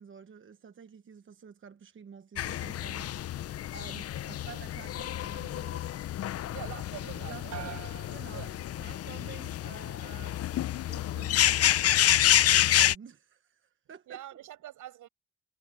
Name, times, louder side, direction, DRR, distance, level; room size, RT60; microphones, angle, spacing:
voice 1, 0.0-5.9 7.0-7.8 8.1-8.5 8.8-10.5 10.9-14.2, right 7 dB, 40° right, 1.2 m, -50 dB
sound 1, 2.4-12.9, left 12 dB, 55° left, 0.6 m, -28 dB
voice 2, 6.5-7.8 8.3-8.5 14.1-15.1, right 13 dB, 80° right, 6.8 m, -44 dB
sound 2, 7.5-9.2 9.6-10.2, right 10 dB, 65° right, 4.5 m, -47 dB
cardioid pair, 90°, 30 cm